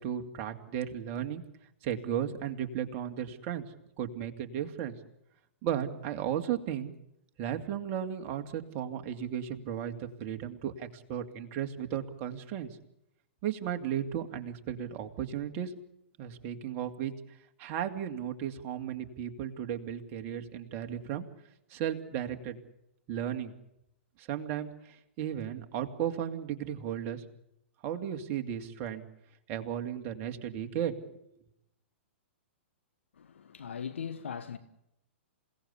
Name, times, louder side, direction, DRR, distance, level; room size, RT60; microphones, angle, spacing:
voice 1, 0.0-1.4 1.8-3.6 4.0-5.0 5.6-6.9 7.4-12.8 13.4-15.7 16.2-17.1 17.6-21.3 21.7-22.6 23.1-23.5 24.2-27.2 27.8-29.0 29.5-30.9, right 9 dB, 35° right, 2.6 m, -35 dB
voice 2, 33.1-34.6, left 7 dB, 70° left, 1.4 m, -39 dB
28.0 x 17.5 x 8.3 m
figure-of-eight pair, 115°, 7 cm